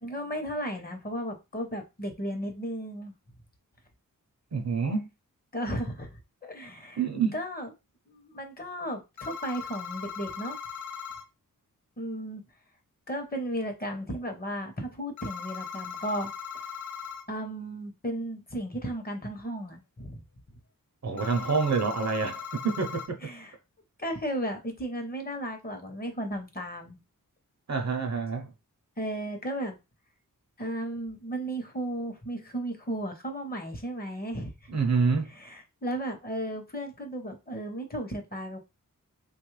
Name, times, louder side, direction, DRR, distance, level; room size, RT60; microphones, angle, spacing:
voice 1, 0.0-3.1 5.5-7.0 7.3-7.7 8.1-10.6 12.0-12.4 13.1-16.3 17.3-20.2 23.2-23.5 24.0-27.0 29.0-29.8 30.6-34.7 35.4-38.6, right 1 dB, 30° left, 0.8 m, -34 dB
voice 2, 4.5-5.1 7.0-7.4 21.0-23.3 27.7-28.5 34.7-35.3, right 5 dB, 55° right, 0.7 m, -27 dB
sound 1, 9.2-11.2 15.2-17.2 21.2-23.1, left 6 dB, 60° left, 0.5 m, -39 dB
3.0 x 2.3 x 3.1 m
wide cardioid pair, 95°, 33 cm